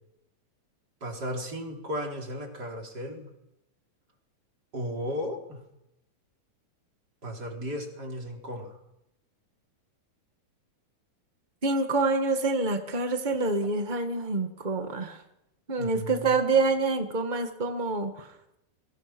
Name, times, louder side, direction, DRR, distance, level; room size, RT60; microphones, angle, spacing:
voice 1, 1.0-3.3 4.7-5.6 7.2-8.8 15.8-16.4, equal, 30° right, 1 dB, 4.4 m, -35 dB
voice 2, 11.6-15.2 15.7-18.3, right 3 dB, 70° right, 5 dB, 0.4 m, -27 dB
28.5 x 22.0 x 6.1 m, 0.86 s
omnidirectional pair, 4.0 m